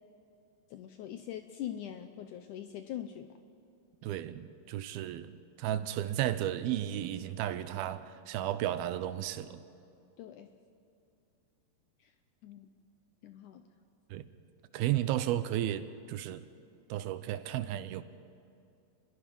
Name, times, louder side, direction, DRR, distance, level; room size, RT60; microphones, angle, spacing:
voice 1, 0.7-3.3 10.2-10.5 12.0-12.1 12.4-12.8 13.2-13.7, left 11 dB, 75° left, 1.9 m, -42 dB
voice 2, 4.0-9.6 14.1-14.3 14.7-16.4 16.9-18.0, right 12 dB, 80° right, 2.6 m, -33 dB
29.5 x 21.5 x 5.4 m
omnidirectional pair, 4.4 m